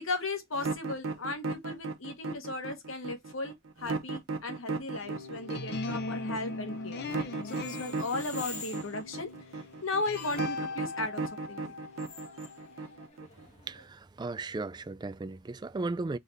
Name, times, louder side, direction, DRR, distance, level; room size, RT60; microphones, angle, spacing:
voice 1, 0.0-7.0 7.4-11.7, left 3 dB, 85° left, 1.4 m, -36 dB
sound 1, 0.5-13.5, right 4 dB, 80° right, 0.7 m, -36 dB
sound 2, 5.0-13.1, left 3 dB, 55° left, 0.7 m, -40 dB
sound 3, 7.4-13.9, left 3 dB, 35° left, 1.7 m, -49 dB
voice 2, 13.7-16.2, right 3 dB, 20° right, 0.3 m, -36 dB
3.8 x 3.5 x 4.0 m
head